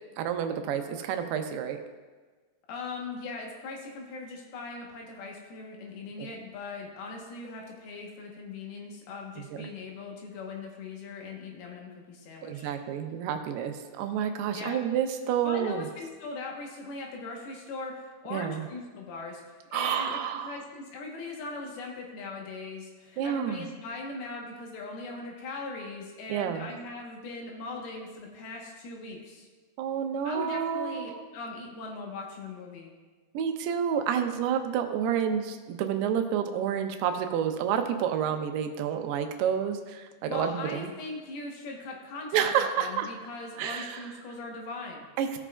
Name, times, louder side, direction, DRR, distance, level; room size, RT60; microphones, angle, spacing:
voice 1, 0.2-1.8 6.2-6.3 9.4-9.7 12.4-15.9 18.3-18.7 19.7-20.6 23.2-23.7 26.3-26.7 29.8-31.2 33.3-40.9 42.3-43.1 43.6-44.1 45.2-45.4, right 8 dB, 85° right, 7 dB, 2.6 m, -29 dB
voice 2, 2.7-12.8 14.5-14.8 15.4-19.4 19.7-29.5 30.2-32.9 40.3-42.5 42.8-45.1, left 3 dB, 75° left, 0 dB, 2.9 m, -40 dB
16.0 x 6.1 x 2.2 m, 1.4 s
omnidirectional pair, 4.6 m